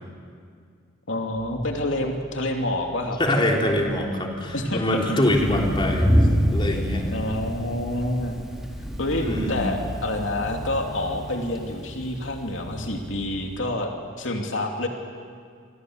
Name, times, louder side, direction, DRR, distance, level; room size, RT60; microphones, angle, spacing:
voice 1, 1.1-3.2 4.5-5.4 7.1-8.4 9.0-13.9 14.2-14.9, left 1 dB, 75° left, 2 dB, 2.8 m, -28 dB
sound 1, 1.3-4.0 4.3-6.4 6.6-10.1 10.3-12.9 13.2-13.3, equal, 45° left, 6.7 m, -44 dB
voice 2, 3.2-6.1 6.5-7.1 9.2-9.6, left 1 dB, 25° left, 0 dB, 3.5 m, -24 dB
Thunder, 5.3-12.1, equal, ahead, 3.8 m, -27 dB
sound 2, 5.3-13.6, equal, 40° right, 5.4 m, -39 dB
28.5 x 25.0 x 8.0 m, 2.1 s
head